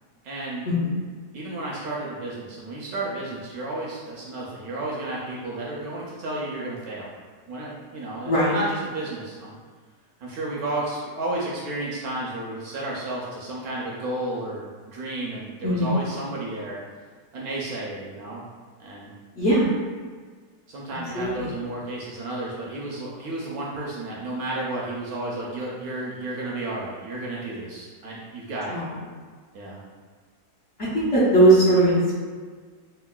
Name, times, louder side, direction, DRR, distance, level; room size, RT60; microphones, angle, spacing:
voice 1, 0.2-0.7 1.3-7.1 7.5-9.6 10.2-16.8 17.3-18.4 18.8-19.1 20.7-28.8 29.5-29.8, right 2 dB, 70° right, -5 dB, 0.9 m, -32 dB
voice 2, 8.2-8.6 15.6-15.9 19.4-19.7 21.1-21.5 28.7-28.8 30.9-32.2, right 1 dB, 65° left, -10 dB, 0.7 m, -19 dB
4.4 x 2.0 x 2.2 m, 1.5 s
omnidirectional pair, 1.9 m